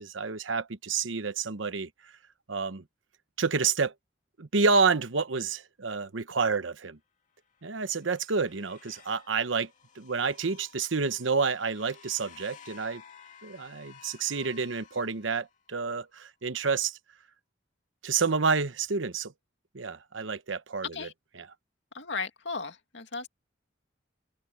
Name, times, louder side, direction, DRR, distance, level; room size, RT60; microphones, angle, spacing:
voice 1, 0.0-1.9 2.5-2.8 3.4-3.9 4.4-7.0 7.6-9.7 10.0-13.0 13.4-17.0 18.0-19.3 19.7-21.1 21.4-21.5, right 4 dB, 85° right, 1.0 m, -29 dB
sound 1, 7.5-15.7, left 7 dB, 40° left, 2.3 m, -54 dB
voice 2, 21.9-23.3, left 4 dB, 70° left, 2.4 m, -36 dB
open air
head